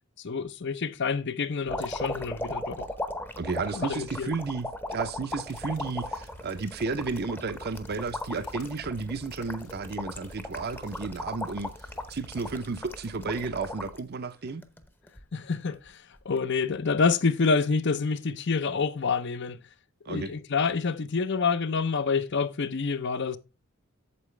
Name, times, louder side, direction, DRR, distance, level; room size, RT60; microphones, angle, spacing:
voice 1, 0.2-2.9 3.7-4.4 15.3-19.6 20.1-23.4, left 5 dB, 55° left, 0.6 m, -27 dB
sound 1, 1.7-14.0 14.5-15.2 16.2-16.4, left 1 dB, 10° left, 0.8 m, -37 dB
voice 2, 3.4-11.7 12.1-14.6 20.1-20.3, right 4 dB, 50° right, 0.6 m, -33 dB
sound 2, 5.3-13.3, left 1 dB, 85° left, 2.9 m, -52 dB
8.5 x 7.6 x 3.2 m
head